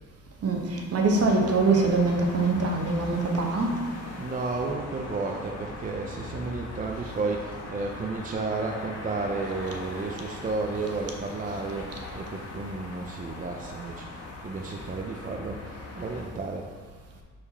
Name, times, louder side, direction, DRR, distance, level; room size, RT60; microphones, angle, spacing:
voice 1, 0.9-3.7, right 3 dB, 55° right, 2 dB, 1.1 m, -23 dB
sound 1, 1.1-16.3, left 2 dB, 55° left, 1.6 m, -40 dB
voice 2, 4.2-15.6 16.0-16.7, right 3 dB, 30° right, 1 dB, 0.6 m, -32 dB
5.1 x 4.9 x 4.2 m, 1.5 s
cardioid pair, 90°, 30 cm